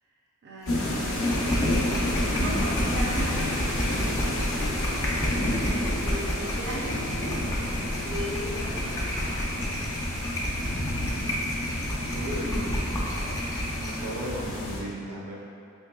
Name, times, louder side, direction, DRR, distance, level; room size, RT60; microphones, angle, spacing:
voice 1, 0.4-3.5 6.0-7.0 8.0-9.4, equal, 50° right, -6 dB, 0.5 m, -37 dB
sound 1, 0.7-14.8, left 1 dB, 60° left, 0.7 m, -30 dB
sound 2, 0.7-14.0, equal, 15° left, 0.4 m, -31 dB
voice 2, 12.1-12.6 13.8-15.4, equal, 80° right, -4 dB, 0.8 m, -35 dB
4.7 x 3.0 x 2.2 m, 2.6 s
head